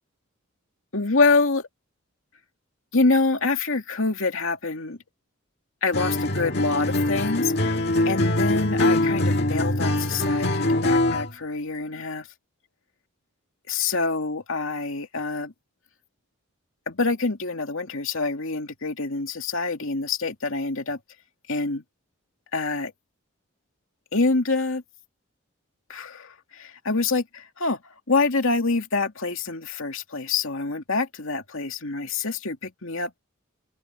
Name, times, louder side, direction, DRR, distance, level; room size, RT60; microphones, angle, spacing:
voice 1, 0.9-1.7 2.9-5.0 5.8-7.8 8.1-12.3 13.7-15.5 16.9-21.0 21.5-21.8 22.5-22.9 24.1-24.8 25.9-27.8 28.1-33.1, left 3 dB, 70° left, 2.5 m, -26 dB
Acoustic guitar, 5.9-11.3, left 1 dB, 50° left, 2.1 m, -23 dB
open air
head